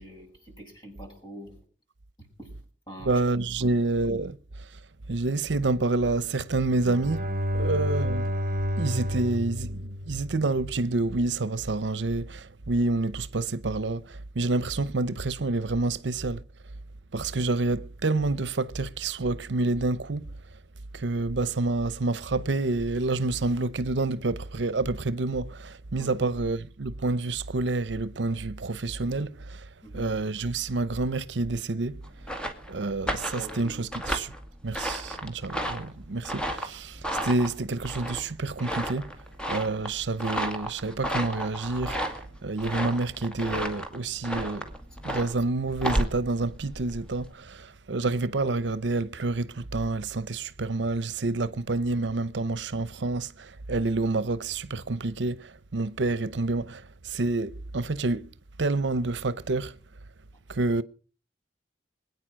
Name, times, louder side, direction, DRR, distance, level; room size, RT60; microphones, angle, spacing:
voice 1, 0.0-1.6 2.2-2.5 2.9-3.1 3.6-3.8 7.6-7.9 26.0-26.1 29.8-30.1 33.4-33.9, right 1 dB, 25° left, 7.2 m, -44 dB
voice 2, 3.0-4.7 5.1-7.3 7.5-8.3 8.8-16.4 17.1-20.3 20.9-32.0 32.7-34.3 34.6-39.1 39.5-44.7 45.0-58.3 58.6-59.8 60.5-60.8, right 3 dB, 75° right, 0.8 m, -28 dB
Bowed string instrument, 6.7-10.7, equal, 50° right, 1.1 m, -30 dB
sound 1, 32.0-47.3, equal, 5° left, 2.0 m, -33 dB
21.5 x 9.5 x 6.3 m
head